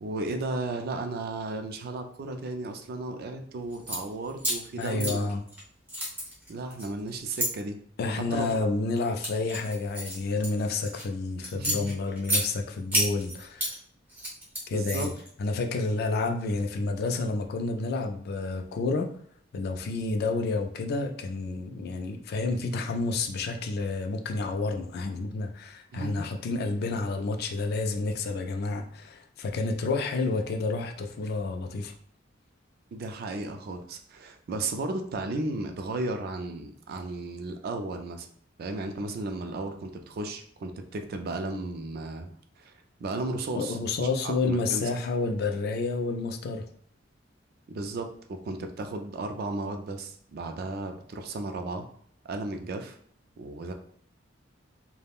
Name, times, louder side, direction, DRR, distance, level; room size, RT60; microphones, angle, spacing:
voice 1, 0.0-5.3 6.5-7.8 8.3-8.5 11.5-11.9 14.7-15.1 25.9-26.3 32.9-38.3 38.6-42.3 42.6-42.7 43.0-44.8 47.7-51.9 52.2-53.0 53.4-53.7, right 2 dB, 55° right, 6 dB, 0.3 m, -34 dB
sound 1, 3.7-4.0 4.4-5.6 5.9-7.5 8.2-8.5 9.0-11.0 11.4-12.4 12.9-13.7 14.1-15.3, equal, 10° right, 0.9 m, -30 dB
voice 2, 4.8-5.4 8.0-13.7 14.7-15.1 15.4-19.1 19.5-31.9 43.5-46.7, left 3 dB, 55° left, 5 dB, 0.3 m, -30 dB
3.4 x 2.0 x 2.3 m, 0.62 s
head